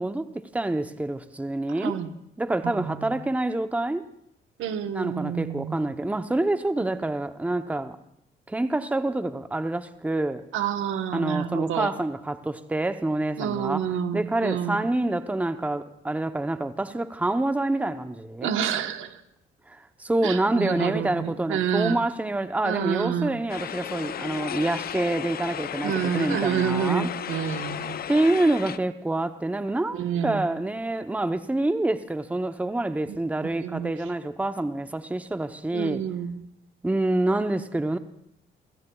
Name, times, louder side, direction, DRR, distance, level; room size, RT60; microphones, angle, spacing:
voice 1, 0.0-2.0 2.4-4.0 4.9-8.0 8.5-10.4 11.1-18.6 19.7-27.1 28.1-36.0 36.8-38.0, right 2 dB, 5° right, 0.7 m, -27 dB
voice 2, 2.6-3.1 4.6-5.9 10.5-11.9 13.4-14.8 18.4-19.2 20.2-22.0 22.6-23.4 25.8-28.0 29.9-30.4 33.1-33.2 33.6-34.1 35.7-36.3, right 8 dB, 85° right, 1.1 m, -28 dB
sound 1, 23.5-28.8, left 9 dB, 50° left, 0.5 m, -34 dB
30.0 x 16.5 x 2.3 m
cardioid pair, 90°, 20 cm